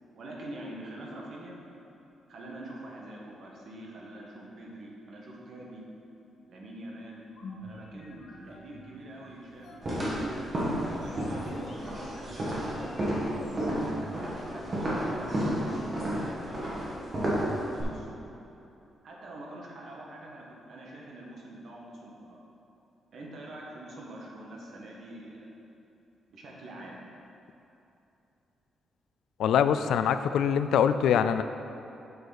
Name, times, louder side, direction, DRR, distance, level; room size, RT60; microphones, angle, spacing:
voice 1, 0.1-1.6 2.3-5.8 6.5-7.2 7.6-9.8 10.7-15.9 16.1-17.4 17.7-18.3 19.0-22.4 23.1-25.5 26.3-27.0, right 1 dB, 50° right, -2 dB, 1.3 m, -45 dB
sound 1, 7.2-13.9, left 1 dB, 50° left, 1.2 m, -49 dB
sound 2, 9.8-17.8, right 1 dB, 25° right, 1.6 m, -31 dB
sound 3, 10.9-17.1, left 2 dB, 20° left, 0.4 m, -46 dB
voice 2, 29.4-31.4, left 8 dB, 80° left, 11 dB, 0.3 m, -24 dB
8.0 x 6.6 x 4.0 m, 2.8 s
wide cardioid pair, 180°, 0 cm